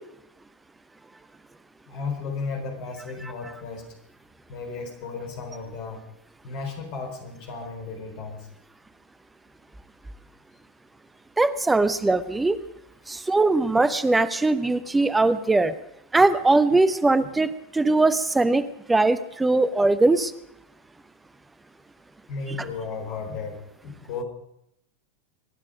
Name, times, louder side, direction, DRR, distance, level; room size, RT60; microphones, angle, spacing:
voice 1, 1.9-3.8 4.5-6.0 6.4-8.5 13.2-13.3 16.1-16.2 17.2-17.3 22.3-24.2, left 4 dB, 45° left, 3 dB, 4.1 m, -34 dB
voice 2, 11.4-12.6 13.1-15.7 16.1-20.3, right 2 dB, 10° right, 14 dB, 0.8 m, -21 dB
24.0 x 9.9 x 5.1 m, 0.79 s
figure-of-eight pair, 90°, 0 cm